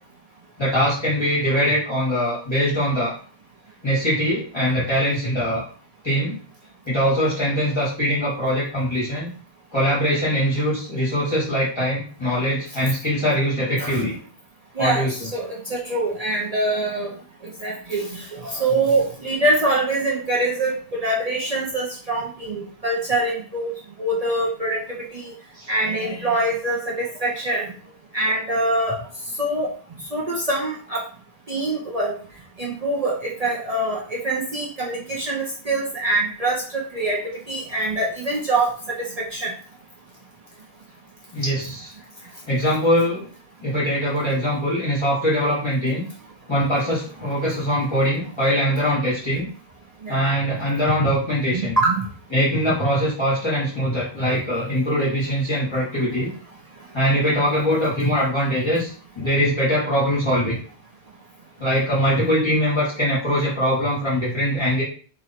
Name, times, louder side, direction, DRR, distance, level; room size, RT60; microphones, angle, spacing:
voice 1, 0.6-3.2 3.8-5.7 6.0-6.4 6.9-9.3 9.7-14.1 14.8-15.1 25.5-25.7 41.3-41.9 42.5-43.3 43.6-46.0 46.5-49.5 50.1-51.7 52.3-56.3 56.9-60.6 61.6-64.8, equal, 25° left, -9 dB, 1.6 m, -22 dB
voice 2, 14.8-17.1 17.6-23.7 24.0-24.8 25.1-25.3 25.7-27.7 28.1-29.0 29.4-29.7 30.1-31.0 31.5-32.1 32.6-38.7 39.0-39.1 39.3-39.5 50.0-50.1 51.5-52.0 54.2-54.4, right 2 dB, 40° right, -4 dB, 0.8 m, -24 dB
3.1 x 2.8 x 4.1 m, 0.42 s
omnidirectional pair, 1.1 m